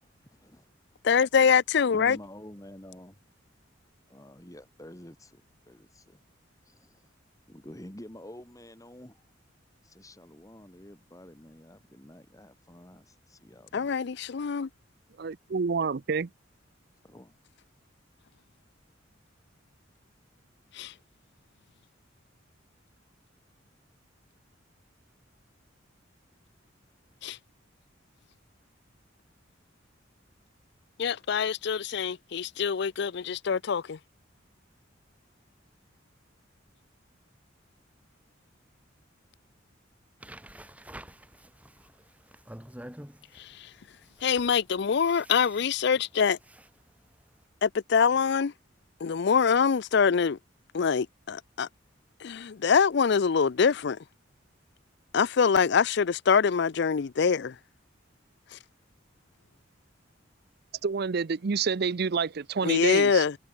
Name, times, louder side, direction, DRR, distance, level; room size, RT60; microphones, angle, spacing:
voice 1, 0.0-0.7 1.9-3.2 4.1-6.2 6.6-7.1 7.5-9.2 9.8-13.9 17.0-17.4, left 1 dB, 15° left, 2.5 m, -49 dB
voice 2, 1.0-2.2 13.7-14.7 20.7-20.9 27.2-27.4 31.0-34.0 43.4-43.7 44.2-46.4 47.6-48.5 49.0-50.4 50.7-51.7 52.2-54.0 55.1-57.5 62.6-63.4, left 6 dB, 60° left, 0.5 m, -24 dB
voice 3, 15.2-16.3 60.8-63.2, right 5 dB, 55° right, 0.5 m, -28 dB
sound 1, 40.2-47.4, right 1 dB, 5° right, 4.6 m, -49 dB
head